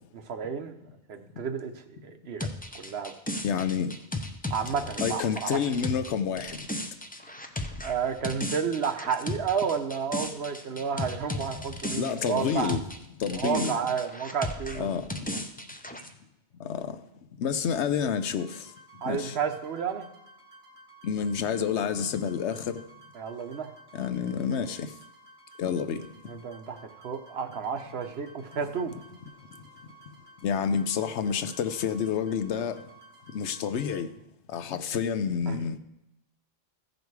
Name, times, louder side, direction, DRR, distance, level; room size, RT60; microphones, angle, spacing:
voice 1, 0.1-0.7 1.1-2.5 2.7-3.1 4.5-5.6 7.8-12.7 13.2-15.0 15.3-15.4 19.0-20.1 23.1-23.7 26.3-28.9 35.5-35.6, right 6 dB, 65° right, 1.0 m, -31 dB
sound 1, 2.4-13.0 13.2-16.1, left 1 dB, 10° left, 0.5 m, -35 dB
voice 2, 3.4-3.9 5.0-6.6 12.0-12.8 13.2-13.7 14.7-15.2 16.6-17.0 17.4-18.7 19.0-19.4 21.0-22.8 23.9-24.9 25.6-26.1 30.4-32.8 33.3-34.1 34.5-35.8, left 7 dB, 80° left, 1.0 m, -29 dB
sound 2, 18.1-34.0, right 1 dB, 50° right, 2.0 m, -54 dB
15.5 x 5.2 x 4.6 m
omnidirectional pair, 1.2 m